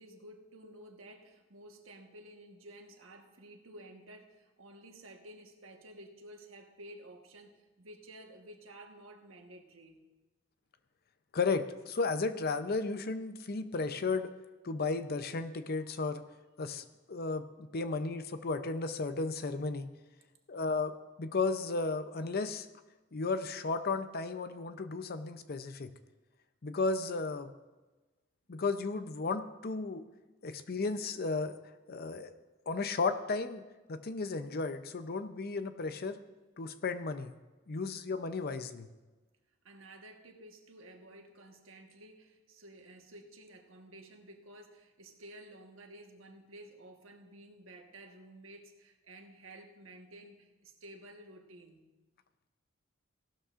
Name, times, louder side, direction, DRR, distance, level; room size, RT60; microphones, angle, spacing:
voice 1, 0.0-10.0 39.6-51.9, right 1 dB, 75° right, 3 dB, 1.3 m, -53 dB
voice 2, 11.3-14.3 14.6-16.2 16.6-19.9 20.5-22.7 23.1-25.9 26.6-27.5 28.5-30.0 30.4-31.5 31.9-32.3 32.7-33.6 33.9-36.2 36.6-37.3 37.7-38.9, left 3 dB, 50° left, 10 dB, 0.6 m, -34 dB
16.5 x 12.5 x 2.5 m, 1.2 s
head